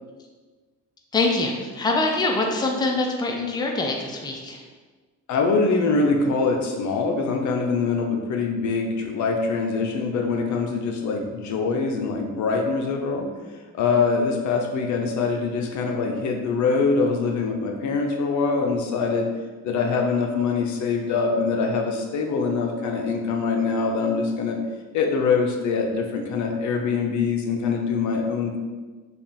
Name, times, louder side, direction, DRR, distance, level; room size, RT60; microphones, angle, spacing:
voice 1, 1.1-4.6, left 2 dB, 15° left, 1 dB, 0.5 m, -24 dB
voice 2, 5.3-13.3 13.7-19.3 19.6-24.6 24.9-28.6, left 4 dB, 70° left, 2 dB, 0.6 m, -24 dB
3.4 x 2.3 x 4.0 m, 1.4 s
cardioid pair, 90°, 30 cm